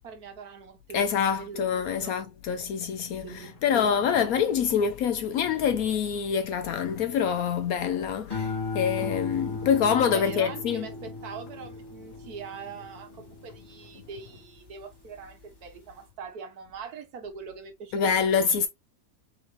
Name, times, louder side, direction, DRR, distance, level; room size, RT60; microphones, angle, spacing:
voice 1, 0.0-2.3 3.2-4.0 10.1-18.5, right 6 dB, 65° right, 1.4 m, -42 dB
voice 2, 0.9-10.9 17.9-18.7, left 7 dB, 70° left, 0.9 m, -26 dB
sound 1, 3.4-14.4, left 5 dB, 55° left, 1.2 m, -48 dB
sound 2, 8.3-14.8 15.3-15.8, left 3 dB, 15° left, 1.6 m, -37 dB
4.7 x 3.1 x 3.0 m
omnidirectional pair, 1.8 m